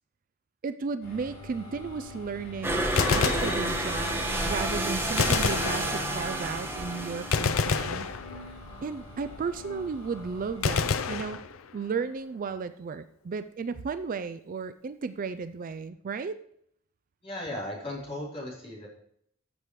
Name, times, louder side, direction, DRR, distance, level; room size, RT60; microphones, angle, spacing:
voice 1, 0.6-8.1 8.8-11.4 11.7-16.4, right 5 dB, 40° right, 13 dB, 0.4 m, -34 dB
sound 1, 1.0-11.1, left 1 dB, 50° left, 3.6 m, -44 dB
sound 2, 2.6-8.2, right 1 dB, 10° right, 1.4 m, -30 dB
Gunshot gunfire, 2.8-4.2 5.2-6.4 7.3-8.7 10.6-12.0, left 5 dB, 70° left, 0.6 m, -29 dB
voice 2, 17.2-18.9, left 1 dB, 30° left, -5 dB, 3.6 m, -36 dB
14.0 x 6.7 x 3.1 m, 0.70 s
head